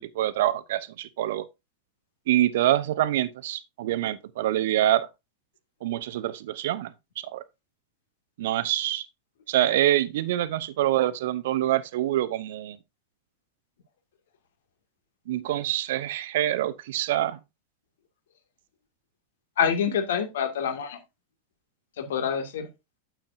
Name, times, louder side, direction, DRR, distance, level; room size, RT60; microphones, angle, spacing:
voice 1, 0.0-1.4 2.3-5.1 5.8-7.4 8.4-9.1 9.5-12.8 15.3-17.4, right 13 dB, 55° right, 0.8 m, -26 dB
voice 2, 19.6-21.0 22.0-22.7, left 7 dB, 60° left, 2.1 m, -26 dB
9.0 x 8.7 x 2.6 m
figure-of-eight pair, 90°, 0 cm